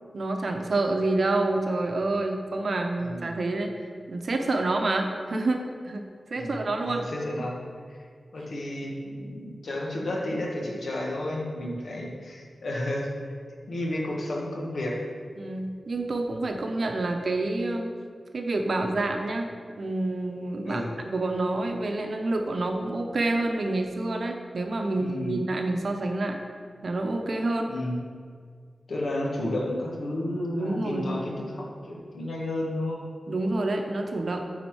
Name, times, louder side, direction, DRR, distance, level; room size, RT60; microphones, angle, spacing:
voice 1, 0.1-3.7 4.1-6.0 6.3-7.0 15.4-17.9 18.3-19.5 19.8-26.4 26.8-27.7 30.6-31.1 33.3-34.4, right 2 dB, 60° right, 3 dB, 0.8 m, -28 dB
voice 2, 3.0-3.4 6.4-7.6 7.9-8.0 8.3-13.1 13.7-15.1 20.6-20.9 25.0-25.4 27.7-28.0 28.9-33.1, left 1 dB, 80° left, -2 dB, 1.3 m, -32 dB
9.6 x 4.0 x 4.7 m, 2.1 s
wide cardioid pair, 120°, 0 cm